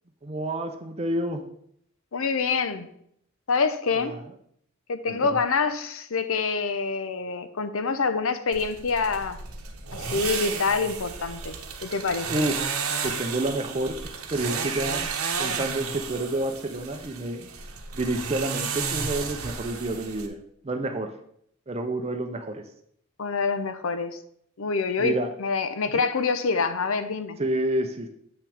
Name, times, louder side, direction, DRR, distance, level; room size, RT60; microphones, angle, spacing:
voice 1, 0.2-1.4 3.9-4.3 5.1-5.4 12.3-12.7 13.0-14.0 14.3-15.1 15.4-17.5 17.9-20.4 20.6-21.1 21.7-22.6 25.0-25.3 25.9-26.0 27.4-28.1, right 1 dB, 30° right, 5 dB, 0.6 m, -29 dB
voice 2, 2.1-2.9 3.5-4.2 4.9-9.4 9.9-11.5 11.8-12.3 23.2-24.2 24.6-27.4, left 4 dB, 70° left, 10 dB, 0.7 m, -26 dB
sound 1, 8.5-20.3, right 5 dB, 85° right, 1.0 m, -32 dB
8.2 x 5.9 x 3.5 m, 0.69 s
head